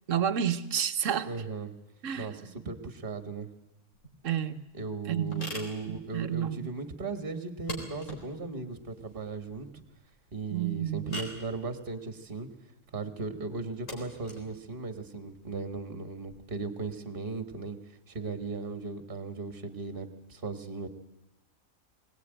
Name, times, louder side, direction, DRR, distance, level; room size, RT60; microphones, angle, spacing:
voice 1, 0.1-1.3 2.0-2.5 4.2-4.7 5.1-5.5 5.9-6.7 10.5-11.2, right 9 dB, 65° right, 1.4 m, -30 dB
voice 2, 1.3-1.7 2.2-3.5 4.7-9.8 10.3-12.5 12.9-17.8 18.1-20.9, right 4 dB, 40° right, 1.8 m, -37 dB
sound 1, 3.9-16.3, left 1 dB, 65° left, 4.5 m, -46 dB
21.5 x 19.0 x 9.1 m
omnidirectional pair, 1.4 m